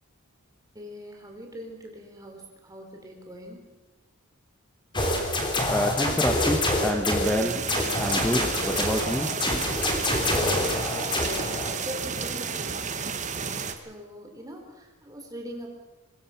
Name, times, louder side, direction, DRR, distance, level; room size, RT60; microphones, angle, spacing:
voice 1, 0.7-3.6 10.2-12.9 13.8-15.7, equal, 15° right, 2 dB, 3.9 m, -42 dB
sound 1, 4.9-7.3 7.7-11.7, left 1 dB, 20° left, 3.3 m, -26 dB
voice 2, 5.7-7.6 8.0-9.3, equal, 5° left, 4 dB, 1.2 m, -27 dB
sound 2, 7.2-13.8, right 5 dB, 35° right, 1.5 m, -32 dB
24.5 x 20.5 x 5.9 m, 1.2 s
head